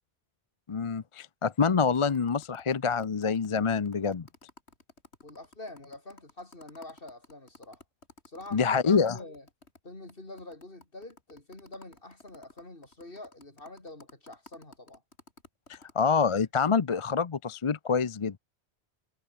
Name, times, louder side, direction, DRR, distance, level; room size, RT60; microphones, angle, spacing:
voice 1, 0.7-4.3 8.5-9.2 15.7-18.4, left 5 dB, 35° left, 0.6 m, -26 dB
sound 1, 1.8-9.8 10.1-10.2 10.4-16.0, left 3 dB, 85° left, 3.4 m, -55 dB
voice 2, 5.2-7.8 8.3-8.8 9.1-9.5 9.8-15.0, left 2 dB, 55° left, 4.5 m, -46 dB
omnidirectional pair, 1.1 m